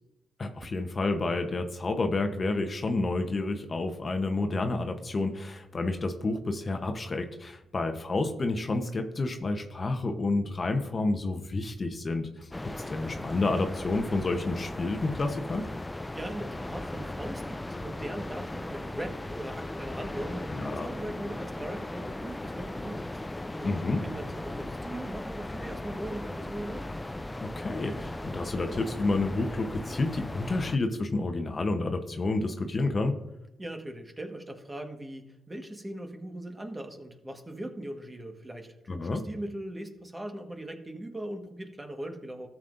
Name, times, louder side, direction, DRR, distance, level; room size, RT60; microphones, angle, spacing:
voice 1, 0.4-15.7 20.5-20.9 23.6-24.0 27.4-33.1 38.9-39.2, left 2 dB, 40° left, 5 dB, 1.0 m, -30 dB
sound 1, 12.5-30.8, left 1 dB, 15° left, 0.4 m, -37 dB
voice 2, 16.1-23.1 23.3-26.9 33.6-42.5, right 1 dB, 20° right, 4 dB, 1.5 m, -40 dB
13.0 x 7.3 x 2.6 m, 0.92 s
supercardioid pair, 65°, 0 cm